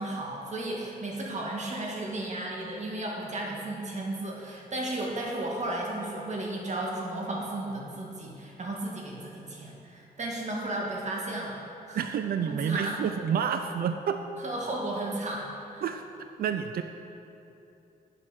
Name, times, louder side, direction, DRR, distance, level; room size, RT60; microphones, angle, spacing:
voice 1, 0.0-11.6 11.9-12.0 12.5-13.0 14.4-15.8, right 1 dB, 45° right, -2 dB, 1.8 m, -34 dB
voice 2, 11.9-14.2 15.8-16.0 16.4-16.8, right 7 dB, 65° right, 7 dB, 0.5 m, -29 dB
9.0 x 7.6 x 6.2 m, 2.8 s
wide cardioid pair, 120°, 17 cm